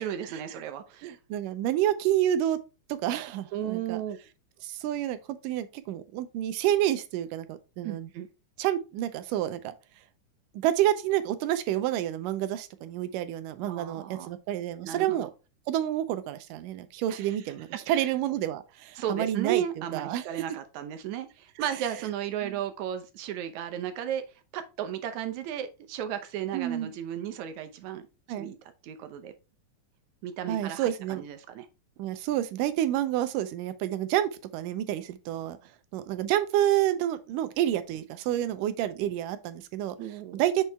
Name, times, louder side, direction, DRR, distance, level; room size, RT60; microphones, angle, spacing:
voice 1, 0.0-1.1 3.5-4.2 7.8-8.3 13.6-14.3 14.8-15.3 17.1-17.4 17.9-18.1 19.0-24.2 24.5-28.1 28.4-28.6 28.8-29.3 30.2-31.7 40.0-40.4, right 10 dB, 70° right, 2.0 m, -34 dB
voice 2, 1.0-2.6 2.9-4.0 4.6-5.2 5.4-8.1 8.6-9.7 10.6-15.3 15.7-19.6 19.9-20.2 22.4-22.5 26.5-26.9 28.3-28.5 30.5-31.2 32.0-35.6 35.9-40.0 40.3-40.6, right 12 dB, 90° right, 2.3 m, -29 dB
6.5 x 4.6 x 3.4 m
omnidirectional pair, 3.7 m